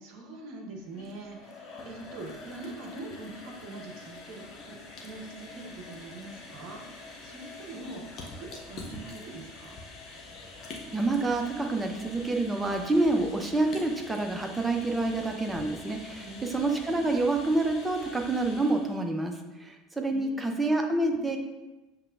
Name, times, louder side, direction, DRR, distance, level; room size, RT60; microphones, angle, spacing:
voice 1, 0.0-8.0 8.4-9.8 16.2-17.1 20.1-20.6 21.0-21.4, right 2 dB, 50° right, 2 dB, 0.8 m, -44 dB
sound 1, 0.8-19.0, left 3 dB, 40° left, 0.8 m, -45 dB
voice 2, 10.9-19.3 19.6-21.4, right 2 dB, 10° right, 3 dB, 0.6 m, -27 dB
6.6 x 3.2 x 2.4 m, 1.1 s
figure-of-eight pair, 70°, 0 cm